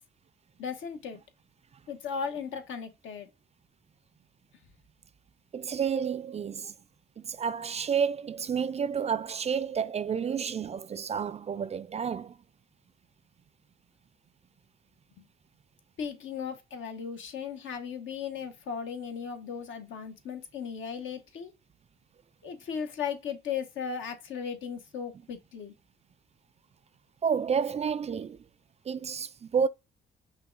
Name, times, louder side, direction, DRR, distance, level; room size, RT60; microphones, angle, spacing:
voice 1, 0.6-1.2 1.9-3.3 16.0-21.5 22.4-25.7, left 7 dB, 75° left, 1.2 m, -36 dB
voice 2, 5.5-6.7 7.2-12.4 27.2-28.4 28.9-29.7, right 7 dB, 35° right, 0.4 m, -30 dB
5.6 x 2.4 x 3.8 m
cardioid pair, 90°, 20 cm